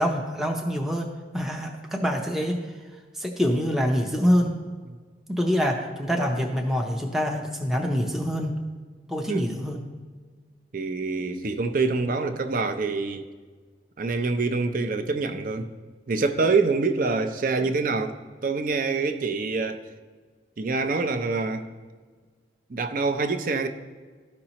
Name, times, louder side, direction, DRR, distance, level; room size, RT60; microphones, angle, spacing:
voice 1, 0.0-2.7 3.1-4.6 5.3-8.6 9.1-9.8, equal, ahead, 0 dB, 0.5 m, -25 dB
voice 2, 10.7-13.3 14.0-15.7 16.1-18.1 18.4-19.8 20.6-21.7 22.7-23.7, right 4 dB, 50° right, 8 dB, 0.5 m, -25 dB
13.5 x 5.2 x 2.9 m, 1.5 s
head